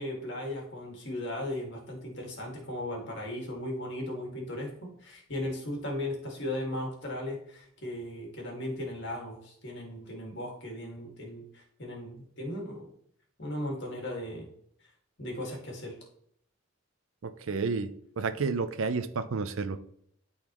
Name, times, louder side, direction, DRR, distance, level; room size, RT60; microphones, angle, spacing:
voice 1, 0.0-12.9 13.4-14.5 15.2-15.9, left 1 dB, 50° left, 0 dB, 2.0 m, -37 dB
voice 2, 17.2-17.9 18.2-19.8, right 4 dB, 65° right, 11 dB, 0.5 m, -30 dB
12.0 x 4.0 x 3.0 m, 0.67 s
head